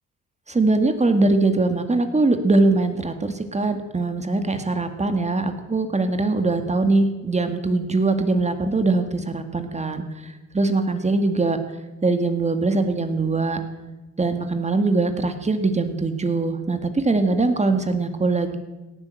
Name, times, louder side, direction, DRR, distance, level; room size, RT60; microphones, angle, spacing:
voice 1, 0.5-11.6 12.0-13.6 14.2-18.6, right 3 dB, 20° right, 8 dB, 1.9 m, -22 dB
17.5 x 9.8 x 7.9 m, 1.1 s
cardioid pair, 90°, 30 cm